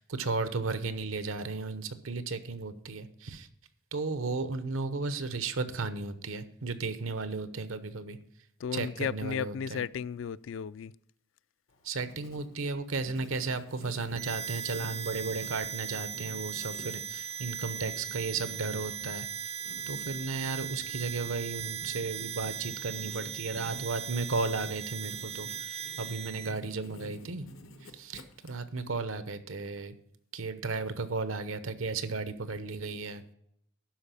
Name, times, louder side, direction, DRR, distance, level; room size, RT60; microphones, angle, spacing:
voice 1, 0.0-3.5 3.9-8.2 8.7-9.8 11.8-19.6 19.9-27.5 27.8-29.9 30.3-33.3, right 3 dB, 90° right, 0.9 m, -34 dB
voice 2, 8.6-10.9, left 7 dB, 65° left, 0.3 m, -34 dB
Writing, 11.7-28.8, left 1 dB, 85° left, 1.3 m, -51 dB
Harmonica, 14.1-26.6, right 8 dB, 30° right, 0.4 m, -39 dB
12.0 x 4.9 x 6.8 m
head